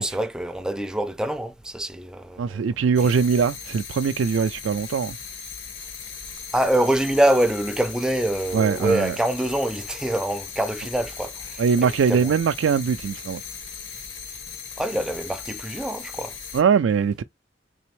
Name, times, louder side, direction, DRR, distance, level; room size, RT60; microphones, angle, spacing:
voice 1, 0.0-2.6 3.0-3.1 6.5-11.6 12.1-12.3 14.8-16.3, right 1 dB, 5° right, 0.4 m, -25 dB
voice 2, 2.4-5.2 8.5-9.2 11.6-13.4 16.5-17.2, right 6 dB, 80° right, 0.3 m, -21 dB
sound 1, 2.9-16.6, left 6 dB, 80° left, 1.9 m, -38 dB
4.1 x 3.4 x 3.0 m
head